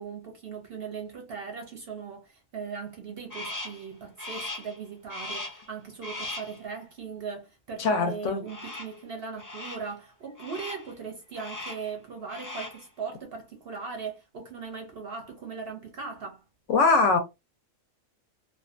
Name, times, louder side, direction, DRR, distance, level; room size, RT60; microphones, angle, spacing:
voice 1, 0.0-16.4, right 5 dB, 60° right, 0.7 m, -39 dB
Crow, 3.3-3.9 4.2-4.8 5.1-5.7 6.0-6.6 8.5-9.0 9.4-9.9 10.4-10.9 11.3-11.9 12.2-12.9, left 2 dB, 30° left, 0.4 m, -38 dB
voice 2, 7.8-8.4 16.7-17.2, left 4 dB, 70° left, 0.9 m, -22 dB
2.5 x 2.2 x 2.4 m
omnidirectional pair, 1.4 m